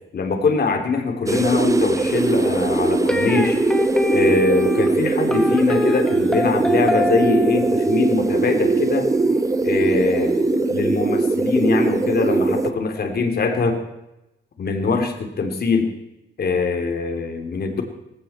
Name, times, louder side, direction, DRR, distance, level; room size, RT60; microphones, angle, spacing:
voice 1, 0.1-3.6 4.1-9.1 9.6-13.8 14.6-15.9 16.4-17.8, left 4 dB, 50° left, 5 dB, 3.2 m, -22 dB
sound 1, 1.3-12.7, right 3 dB, 15° right, 0.9 m, -21 dB
sound 2, 3.1-10.2, equal, 5° left, 2.2 m, -26 dB
18.5 x 16.0 x 4.4 m, 0.93 s
cardioid pair, 90°, 20 cm